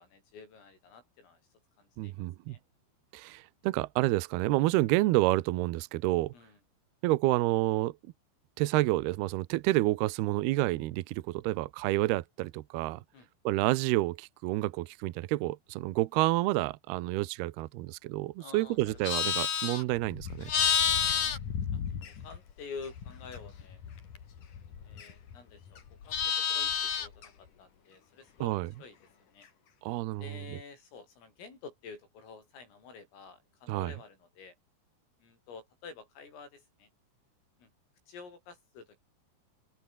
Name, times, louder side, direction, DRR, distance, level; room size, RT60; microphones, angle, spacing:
voice 1, 0.0-1.4 1.8-2.6 6.3-6.6 13.1-13.3 18.4-18.9 19.2-19.3 20.8-21.4 21.7-21.8 22.1-23.8 24.8-28.5 28.8-29.0 29.3-29.5 30.2-34.6 35.2-36.9 37.6-37.7 38.1-39.0, left 5 dB, 85° left, 11.0 m, -49 dB
voice 2, 2.0-2.6 3.1-6.3 7.0-8.0 8.6-13.0 13.4-20.5 28.4-28.7 29.8-30.3 33.7-33.9, right 18 dB, 90° right, 2.3 m, -29 dB
Livestock farm animals working animals, 18.8-22.5 22.8-25.4 25.7-27.3, left 7 dB, 45° left, 3.8 m, -31 dB
omnidirectional pair, 5.8 m